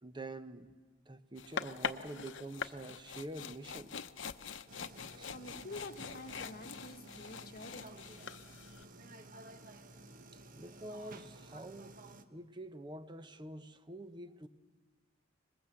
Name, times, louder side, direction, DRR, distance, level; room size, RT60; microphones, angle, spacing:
voice 1, 0.0-0.8 1.1-4.0 5.0-5.3 7.3-7.4 10.3-12.0 12.3-14.5, right 2 dB, 25° right, 11 dB, 0.9 m, -47 dB
sound 1, 1.4-8.9, left 6 dB, 75° left, 0.8 m, -44 dB
sound 2, 4.7-12.2, right 2 dB, 45° right, 1.2 m, -54 dB
voice 2, 5.0-8.0, left 2 dB, 50° left, 5 dB, 1.6 m, -48 dB
26.0 x 21.0 x 7.8 m, 1.4 s
head